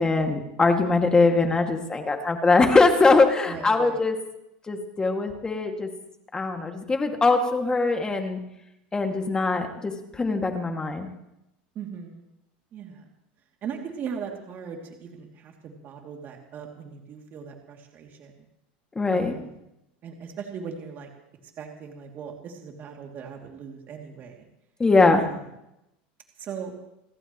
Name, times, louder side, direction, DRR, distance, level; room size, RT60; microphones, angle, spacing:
voice 1, 0.0-4.1 4.7-5.9 6.3-8.4 8.9-11.1 19.0-19.3 24.8-25.2, left 3 dB, 15° left, 4 dB, 2.3 m, -22 dB
voice 2, 3.5-4.0 11.7-12.3 12.7-13.0 13.6-18.4 19.1-19.6 20.0-21.1 21.6-24.4 25.1-25.4 26.4-26.7, right 6 dB, 40° right, 1 dB, 2.9 m, -39 dB
29.0 x 14.5 x 3.2 m, 0.86 s
supercardioid pair, 115°, 5 cm